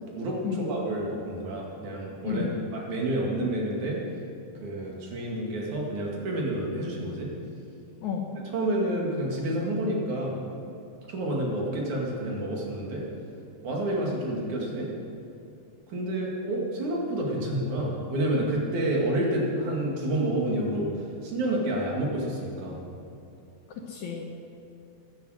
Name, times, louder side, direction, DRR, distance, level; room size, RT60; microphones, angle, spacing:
voice 1, 0.1-4.0 4.5-7.3 8.5-10.4 11.1-13.0 13.6-14.9 15.9-22.8, right 1 dB, 50° right, -2 dB, 3.2 m, -29 dB
voice 2, 2.2-2.6 8.0-8.3 23.9-24.3, left 7 dB, 70° left, 1 dB, 1.8 m, -31 dB
16.0 x 10.5 x 6.4 m, 2.5 s
omnidirectional pair, 4.9 m